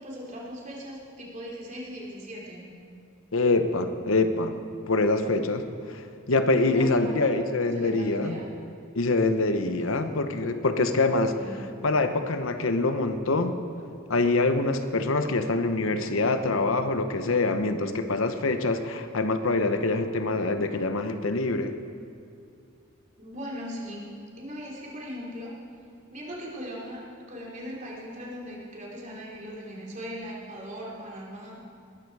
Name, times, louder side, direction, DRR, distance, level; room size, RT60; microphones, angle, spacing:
voice 1, 0.0-2.7 6.6-8.5 11.3-11.7 23.2-24.1 24.4-25.6 26.1-27.0 27.3-31.8, equal, 40° right, -4 dB, 3.3 m, -39 dB
voice 2, 3.3-4.6 4.9-8.4 8.9-11.4 11.8-13.6 14.1-21.8, left 3 dB, 70° left, 8 dB, 0.9 m, -25 dB
20.5 x 12.0 x 4.8 m, 2.4 s
head